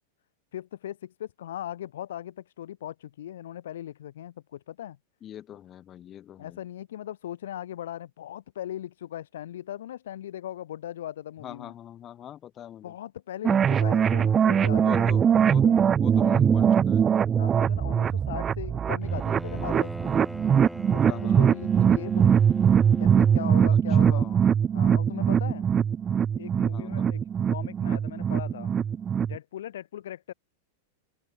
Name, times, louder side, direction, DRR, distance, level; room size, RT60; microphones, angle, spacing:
voice 1, 0.5-5.0 6.4-11.7 12.8-15.2 15.6-15.8 17.4-20.1 20.9-22.4 23.0-24.3 24.7-25.7 26.4-27.2 27.5-28.7 29.2-30.3, left 11 dB, 80° left, 3.2 m, -39 dB
voice 2, 5.2-6.6 11.4-12.9 14.7-17.1 21.0-21.6 24.0-24.5 26.7-27.2, left 11 dB, 25° left, 4.5 m, -42 dB
sound 1, 13.4-29.4, right 8 dB, 20° right, 0.3 m, -22 dB
Bowed string instrument, 19.0-23.9, equal, ahead, 4.5 m, -41 dB
supercardioid pair, 150°, 0 cm